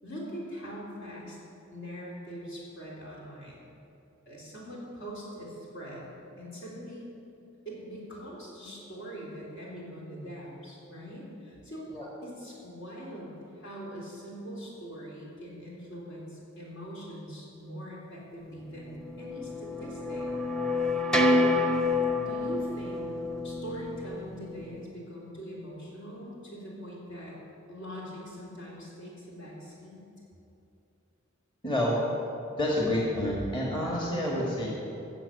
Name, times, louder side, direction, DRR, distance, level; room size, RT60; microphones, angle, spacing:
voice 1, 0.0-1.4 1.7-3.6 4.3-7.1 7.7-11.9 12.2-20.3 21.1-21.6 22.2-23.1 23.4-27.4 27.7-30.0, equal, 65° left, -4 dB, 3.6 m, -42 dB
sound 1, 18.9-24.8, left 2 dB, 5° left, 0.7 m, -28 dB
voice 2, 31.6-32.0 32.5-34.7, left 1 dB, 25° left, -4 dB, 1.8 m, -28 dB
15.5 x 7.3 x 6.7 m, 2.8 s
head